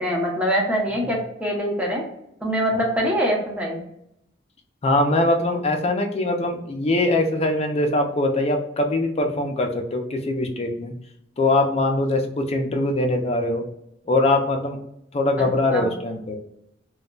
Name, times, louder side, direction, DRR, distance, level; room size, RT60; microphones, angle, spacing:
voice 1, 0.0-2.0 2.4-3.8 15.4-15.5 15.7-15.9, equal, 10° right, -2 dB, 0.7 m, -24 dB
voice 2, 4.8-10.9 11.4-13.7 14.1-14.8 15.1-16.5, left 2 dB, 35° left, 4 dB, 0.4 m, -22 dB
2.2 x 2.1 x 3.7 m, 0.78 s
head